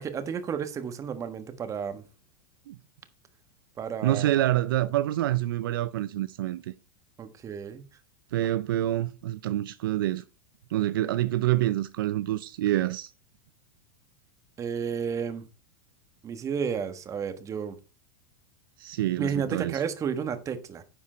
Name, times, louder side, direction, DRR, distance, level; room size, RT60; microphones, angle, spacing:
voice 1, 0.0-2.0 3.8-4.5 7.2-7.8 14.6-15.4 16.2-17.8 19.2-20.8, right 7 dB, 25° right, 1.4 m, -32 dB
voice 2, 4.0-6.6 8.3-10.2 10.7-13.1 18.8-19.8, right 14 dB, 75° right, 0.5 m, -27 dB
10.0 x 5.4 x 4.4 m
hypercardioid pair, 115°, 12 cm